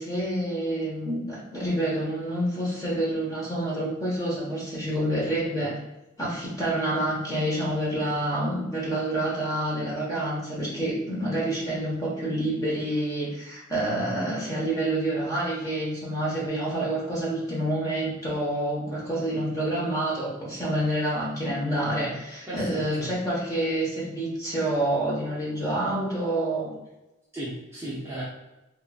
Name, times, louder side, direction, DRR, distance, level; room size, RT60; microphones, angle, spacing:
voice 1, 0.0-5.8 6.2-26.7, right 1 dB, 15° left, -6 dB, 1.0 m, -28 dB
voice 2, 22.5-23.1 27.3-28.2, right 1 dB, 10° right, -8 dB, 0.5 m, -35 dB
3.0 x 2.5 x 2.3 m, 0.98 s
head